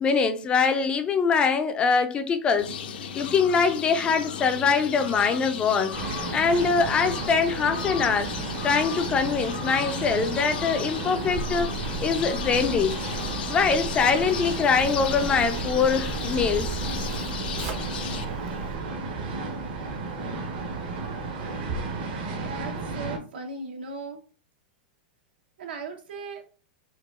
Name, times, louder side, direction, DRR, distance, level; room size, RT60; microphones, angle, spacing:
voice 1, 0.0-2.7 3.1-5.9 6.3-8.3 8.6-11.7 12.0-13.0 13.5-16.8, left 5 dB, 20° left, 0.3 m, -23 dB
sound 1, 2.6-18.2, left 7 dB, 75° left, 0.6 m, -35 dB
sound 2, 5.9-23.2, right 3 dB, 65° right, 1.1 m, -33 dB
Zipper (clothing), 11.2-18.8, right 3 dB, 40° right, 0.6 m, -37 dB
voice 2, 22.4-24.2 25.6-26.5, right 3 dB, 85° right, 1.0 m, -37 dB
4.6 x 2.3 x 2.4 m
supercardioid pair, 150°, 5 cm